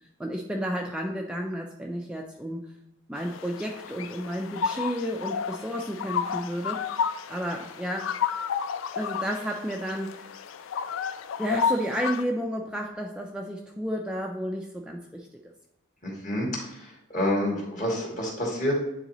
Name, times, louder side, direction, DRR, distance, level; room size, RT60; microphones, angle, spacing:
voice 1, 0.2-2.7 3.1-6.9 7.3-8.1 9.0-10.4 11.4-15.3, equal, 5° right, 0 dB, 0.4 m, -32 dB
sound 1, 3.2-12.2, left 6 dB, 70° left, 0.4 m, -32 dB
voice 2, 16.0-18.7, left 1 dB, 40° left, -3 dB, 2.0 m, -28 dB
9.6 x 3.9 x 2.9 m, 0.87 s
head